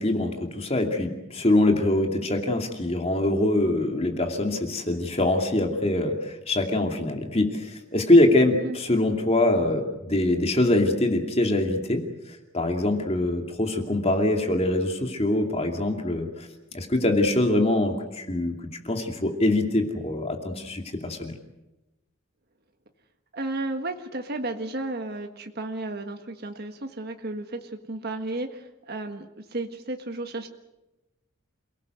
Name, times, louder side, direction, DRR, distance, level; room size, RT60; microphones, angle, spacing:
voice 1, 0.0-16.5 16.7-18.6 18.8-21.3, left 1 dB, 30° left, 4 dB, 2.6 m, -24 dB
voice 2, 23.3-30.5, right 2 dB, 50° right, 5 dB, 1.6 m, -33 dB
28.5 x 18.0 x 7.9 m, 0.99 s
head